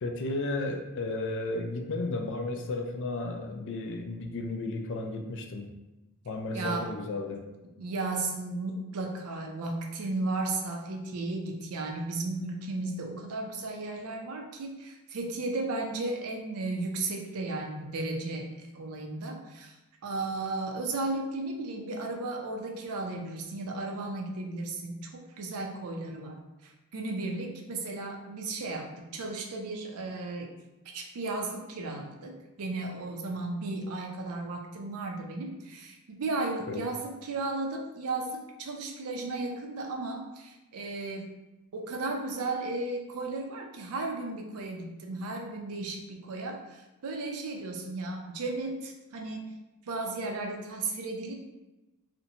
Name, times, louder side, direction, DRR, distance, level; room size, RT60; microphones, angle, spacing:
voice 1, 0.0-5.7 6.2-7.4 36.7-36.8, left 2 dB, 55° left, 3 dB, 0.4 m, -33 dB
voice 2, 6.5-6.9 7.8-18.4 18.7-19.7 20.0-26.4 26.6-30.5 30.9-41.3 41.7-49.5 49.9-51.3, right 2 dB, 75° right, 2 dB, 0.5 m, -35 dB
2.6 x 2.1 x 2.7 m, 1.0 s
head